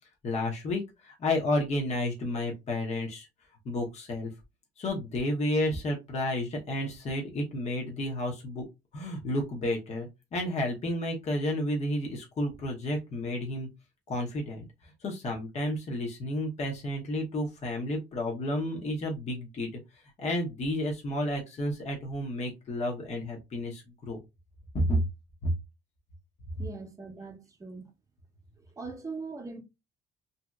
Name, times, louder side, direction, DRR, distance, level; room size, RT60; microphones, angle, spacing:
voice 1, 0.2-3.3 3.6-4.3 4.8-8.6 8.9-13.7 14.1-14.7 15.0-19.7 20.2-24.2 24.7-25.0 25.4-25.5, left 1 dB, 40° left, 0.9 m, -31 dB
voice 2, 26.6-27.9 28.6-29.6, right 4 dB, 20° right, 0.8 m, -41 dB
2.7 x 2.7 x 2.3 m
cardioid pair, 110°, 17 cm